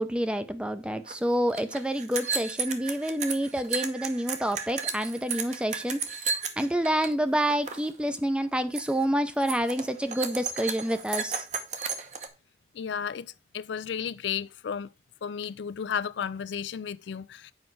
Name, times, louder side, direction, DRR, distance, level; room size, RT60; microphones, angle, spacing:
voice 1, 0.0-11.5, equal, 5° right, 0.5 m, -28 dB
sound 1, 1.1-1.2 1.4-7.1 7.4-7.9 8.2-8.5 8.8-9.0 9.4-12.3, right 5 dB, 40° right, 0.9 m, -33 dB
voice 2, 12.7-14.9 15.2-17.5, left 7 dB, 75° left, 0.4 m, -33 dB
8.0 x 5.2 x 4.6 m
head